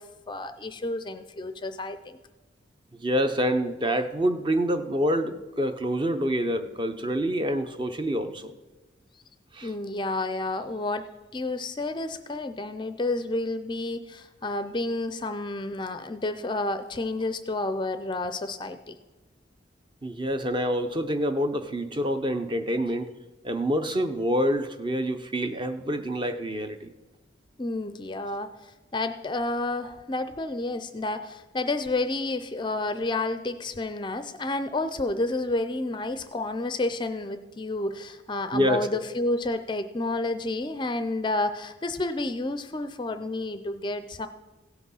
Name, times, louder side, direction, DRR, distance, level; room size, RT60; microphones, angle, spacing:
voice 1, 0.0-2.2 9.6-19.0 27.6-44.3, left 2 dB, 25° left, 10 dB, 0.4 m, -30 dB
voice 2, 2.9-8.5 9.5-9.7 20.0-23.1 23.4-26.9 38.5-39.0, equal, 25° right, 8 dB, 0.6 m, -27 dB
16.5 x 5.9 x 5.6 m, 1.1 s
head